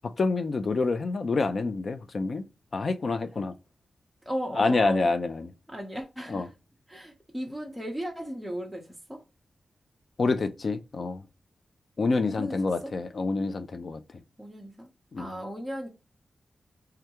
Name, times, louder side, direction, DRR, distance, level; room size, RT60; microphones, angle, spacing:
voice 1, 0.0-2.4 2.7-3.5 4.6-5.5 6.3-6.5 10.2-11.2 12.0-14.0 15.1-15.3, left 3 dB, 50° left, 0.4 m, -27 dB
voice 2, 4.3-5.1 5.7-6.5 6.9-9.2 12.2-12.6 12.8-12.9 14.4-14.9 15.2-15.9, equal, ahead, 0.6 m, -36 dB
3.4 x 2.3 x 2.8 m
wide cardioid pair, 130°, 0 cm